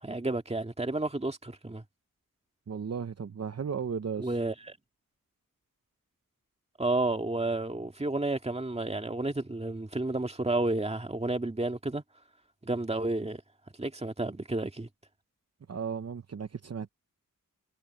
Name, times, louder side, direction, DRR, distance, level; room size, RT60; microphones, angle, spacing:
voice 1, 0.0-1.8 4.2-4.8 6.8-12.0 12.6-13.4 13.8-14.9, right 2 dB, 20° right, 2.0 m, -31 dB
voice 2, 2.7-4.4 15.7-16.9, right 6 dB, 50° right, 0.9 m, -35 dB
wide cardioid pair, 100°, 33 cm